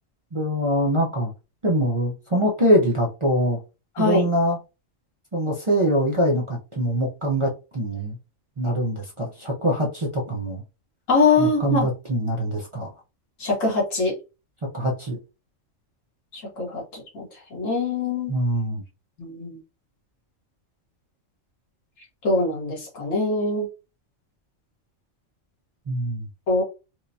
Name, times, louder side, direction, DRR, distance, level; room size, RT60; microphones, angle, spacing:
voice 1, 0.3-1.3 1.6-3.6 4.0-4.6 5.3-8.2 8.6-10.6 11.4-12.9 14.7-15.2 18.3-18.8 25.9-26.3, equal, 35° right, 0.5 m, -23 dB
voice 2, 4.0-4.3 11.1-11.9 13.4-14.1 16.3-17.3 17.5-18.3 19.2-19.6 22.2-23.7 26.5-26.6, left 3 dB, 85° left, 1.7 m, -23 dB
4.6 x 2.1 x 2.7 m
omnidirectional pair, 1.3 m